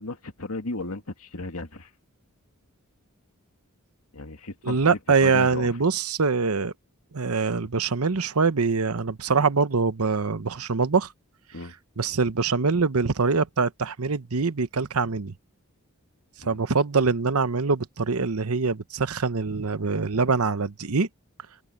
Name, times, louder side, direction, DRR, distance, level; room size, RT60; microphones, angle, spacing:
voice 1, 0.0-1.9 4.1-5.7 11.5-11.7 16.4-16.6, left 2 dB, 75° left, 2.4 m, -35 dB
voice 2, 4.6-6.7 7.1-11.1 12.0-15.3 16.4-21.1, right 4 dB, 75° right, 1.0 m, -24 dB
open air
head